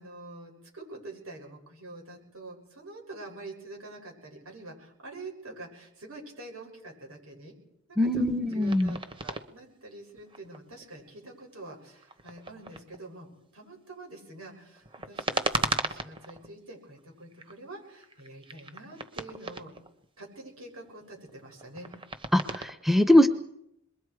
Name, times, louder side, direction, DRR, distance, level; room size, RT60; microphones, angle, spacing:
voice 1, 0.0-7.5 7.9-8.3 8.5-19.7 20.2-21.9, right 2 dB, 75° right, 1 dB, 7.1 m, -46 dB
voice 2, 8.0-9.0 22.3-23.3, left 1 dB, ahead, 9 dB, 0.7 m, -22 dB
sound 1, 8.5-9.4 10.0-11.3 12.0-13.2 14.7-16.5 17.0-17.6 17.8-20.0 20.8-22.7, right 3 dB, 25° right, 1.1 m, -36 dB
27.0 x 22.0 x 4.8 m, 0.78 s
head